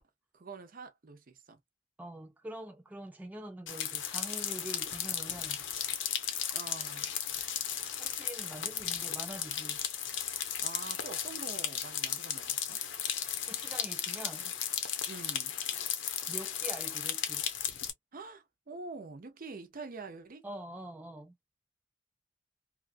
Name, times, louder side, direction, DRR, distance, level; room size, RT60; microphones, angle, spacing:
voice 1, 0.3-1.6 6.5-7.1 10.6-12.8 15.1-15.5 18.1-20.5, right 4 dB, 50° right, 0.7 m, -46 dB
voice 2, 2.0-5.6 8.0-9.8 13.5-14.5 16.3-17.5 20.4-21.3, right 1 dB, 10° right, 0.3 m, -45 dB
sound 1, 3.7-17.9, left 9 dB, 80° left, 0.8 m, -35 dB
2.9 x 2.3 x 2.4 m
head